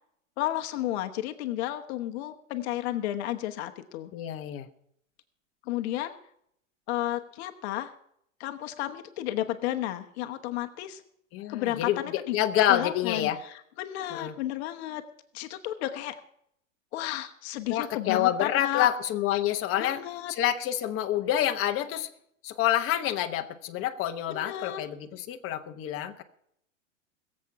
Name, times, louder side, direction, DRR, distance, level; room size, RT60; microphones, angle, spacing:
voice 1, 0.4-4.1 5.6-6.2 6.9-7.9 8.4-11.0 11.5-12.4 12.7-15.0 15.3-16.1 16.9-18.9 19.8-20.3 24.3-24.8, left 14 dB, 55° left, 7 dB, 1.1 m, -32 dB
voice 2, 4.1-4.7 11.3-13.4 14.1-14.3 17.7-20.0 20.3-22.1 22.4-26.2, left 11 dB, 35° left, 6 dB, 1.1 m, -27 dB
21.0 x 7.6 x 5.7 m, 0.72 s
hypercardioid pair, 100°, 39 cm